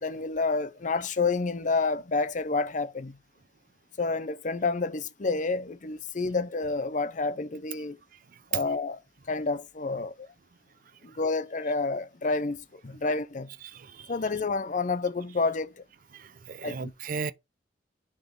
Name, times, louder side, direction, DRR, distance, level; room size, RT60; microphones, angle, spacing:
voice 1, 0.0-3.2 4.0-8.0 8.5-9.0 9.3-10.3 11.0-13.5 14.1-15.8 16.6-16.9, left 3 dB, 45° left, 0.7 m, -29 dB
voice 2, 13.6-14.1 16.1-17.3, right 5 dB, 50° right, 0.5 m, -36 dB
10.0 x 3.8 x 3.7 m
head